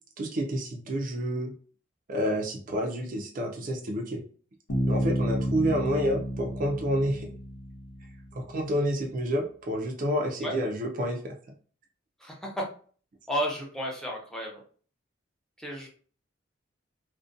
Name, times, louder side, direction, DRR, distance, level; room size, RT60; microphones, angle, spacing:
voice 1, 0.2-1.5 2.1-4.2 4.9-7.3 8.4-11.3, equal, 45° right, 2 dB, 0.4 m, -29 dB
Bass guitar, 4.7-8.4, equal, 90° left, 0.7 m, -31 dB
voice 2, 12.2-12.7 13.3-14.6 15.6-15.9, equal, 5° left, -2 dB, 0.6 m, -32 dB
2.5 x 2.1 x 2.5 m, 0.43 s
head